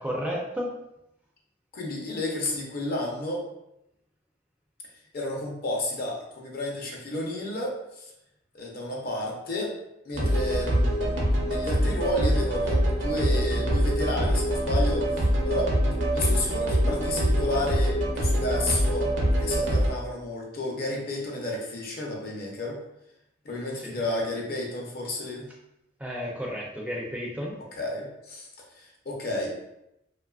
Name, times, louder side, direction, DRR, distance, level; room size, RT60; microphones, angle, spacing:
voice 1, 0.0-0.7 23.8-24.0 26.0-27.6, equal, 5° right, -3 dB, 0.4 m, -32 dB
voice 2, 1.7-3.4 5.1-8.1 8.5-9.7 10.0-15.7 16.1-22.8 23.4-25.5 27.5-28.5 28.7-29.5, left 1 dB, 55° left, -1 dB, 0.6 m, -32 dB
sound 1, 10.1-19.9, equal, 70° right, 0.6 m, -24 dB
2.9 x 2.3 x 2.3 m, 0.85 s
head